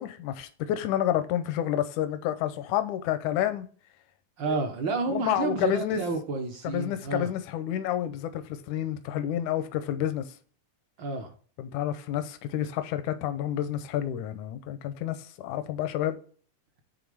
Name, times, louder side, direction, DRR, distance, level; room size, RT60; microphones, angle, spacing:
voice 1, 0.0-3.7 4.5-4.6 5.1-6.0 6.6-10.3 11.6-16.2, left 11 dB, 85° left, 2.1 m, -29 dB
voice 2, 4.4-7.3 11.0-11.3, right 3 dB, 60° right, 1.3 m, -30 dB
9.1 x 3.6 x 4.8 m
omnidirectional pair, 3.3 m